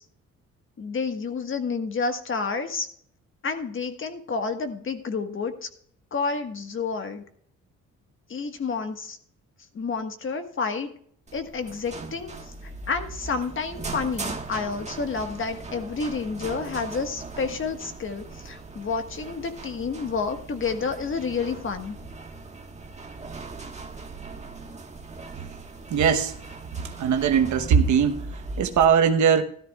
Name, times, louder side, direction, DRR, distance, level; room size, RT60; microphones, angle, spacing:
voice 1, 0.8-2.9 3.4-5.7 6.1-7.2 8.3-9.2 9.7-10.9 11.3-12.5 12.9-22.0, left 5 dB, 40° left, 7 dB, 1.4 m, -30 dB
sound 1, 11.3-28.8, right 3 dB, 25° right, 1.4 m, -39 dB
voice 2, 25.9-26.4 26.8-29.4, right 7 dB, 70° right, 5 dB, 1.0 m, -21 dB
13.5 x 13.0 x 2.3 m, 0.62 s
cardioid pair, 90°, 30 cm